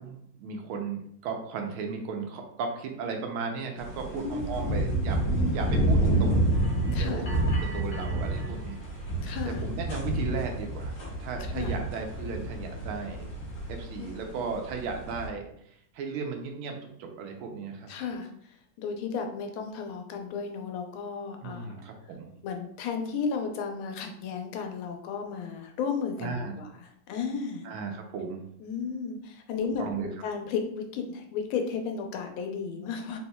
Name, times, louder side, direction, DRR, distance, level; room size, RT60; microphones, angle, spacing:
voice 1, 0.0-8.8 9.4-13.3 13.7-15.5 15.9-17.9 21.4-22.3 26.2-26.5 27.6-28.5 29.8-30.1, right 5 dB, 85° right, 3 dB, 1.5 m, -36 dB
sound 1, 3.8-15.3, right 1 dB, 55° left, 1.2 m, -29 dB
voice 2, 4.1-5.7 6.9-7.2 9.2-9.6 11.5-11.7 14.0-14.3 17.9-18.3 18.8-21.8 22.4-27.6 28.6-33.2, left 5 dB, 85° left, 4 dB, 1.5 m, -34 dB
4.2 x 3.8 x 2.2 m, 0.70 s
omnidirectional pair, 2.3 m